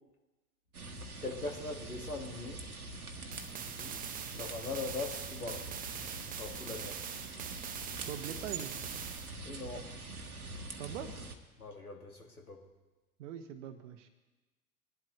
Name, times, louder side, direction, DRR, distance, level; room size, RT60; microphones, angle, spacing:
sound 1, 0.7-11.3, right 3 dB, 80° right, 1.3 m, -44 dB
voice 1, 1.2-2.6 3.7-4.0 4.3-5.7 6.4-7.0 9.4-9.9 11.6-12.6, left 3 dB, 90° left, 3 dB, 1.7 m, -41 dB
sound 2, 3.3-9.3, right 8 dB, 20° right, 0.7 m, -43 dB
voice 2, 8.1-8.8 10.8-11.2 13.2-14.1, right 9 dB, 55° right, 7 dB, 1.0 m, -42 dB
21.0 x 11.5 x 3.0 m, 1.1 s
figure-of-eight pair, 85°, 43 cm